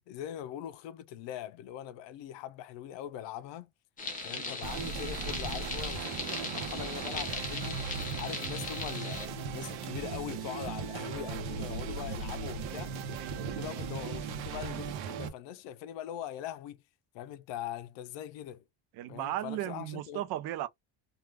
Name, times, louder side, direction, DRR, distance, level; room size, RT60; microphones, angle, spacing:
voice 1, 0.1-3.7 4.2-12.9 13.5-16.8 17.1-18.6 19.1-20.3, left 11 dB, 75° left, 0.6 m, -42 dB
sound 1, 4.0-9.3, left 3 dB, 20° left, 0.6 m, -39 dB
sound 2, 4.6-15.3, right 5 dB, 85° right, 0.8 m, -37 dB
voice 2, 12.6-13.6 18.9-20.7, right 13 dB, 55° right, 0.5 m, -37 dB
2.4 x 2.3 x 3.2 m
cardioid pair, 165°, 44 cm